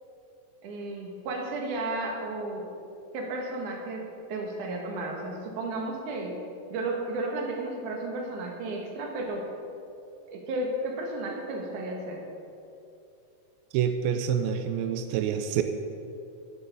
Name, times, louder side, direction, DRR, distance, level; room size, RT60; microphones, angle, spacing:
voice 1, 0.6-2.6 3.1-6.4 6.7-9.5 10.3-12.2, right 2 dB, 65° right, 0 dB, 2.9 m, -33 dB
voice 2, 13.7-15.6, right 8 dB, 90° right, 7 dB, 2.5 m, -27 dB
16.5 x 6.8 x 5.5 m, 2.6 s
omnidirectional pair, 4.1 m